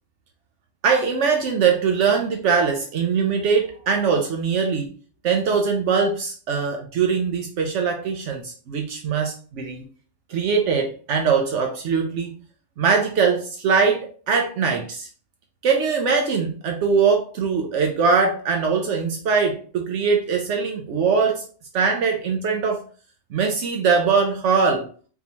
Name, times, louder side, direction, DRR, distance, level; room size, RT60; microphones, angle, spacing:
voice 1, 0.8-4.9 5.2-9.8 10.3-12.4 12.8-15.1 15.6-21.4 21.7-22.8 23.3-24.9, right 5 dB, 75° right, 3 dB, 0.9 m, -21 dB
3.9 x 2.7 x 2.9 m, 0.40 s
omnidirectional pair, 1.3 m